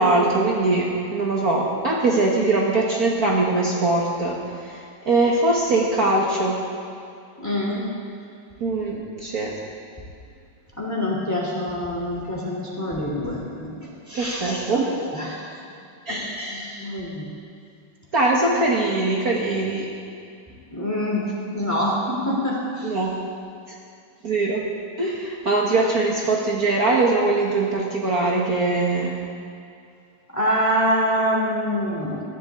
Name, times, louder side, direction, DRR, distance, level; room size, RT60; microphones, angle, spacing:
voice 1, 0.0-4.8 5.1-6.6 8.6-9.5 14.2-15.0 16.1-16.4 18.1-19.9 22.8-23.1 24.2-24.7 25.0-29.1, right 2 dB, 50° right, -3 dB, 1.8 m, -22 dB
voice 2, 7.4-7.8 10.8-15.5 16.1-17.3 20.7-21.2 21.5-22.9 30.3-32.2, equal, 10° left, -4 dB, 3.0 m, -26 dB
19.5 x 15.5 x 3.7 m, 2.4 s
omnidirectional pair, 2.2 m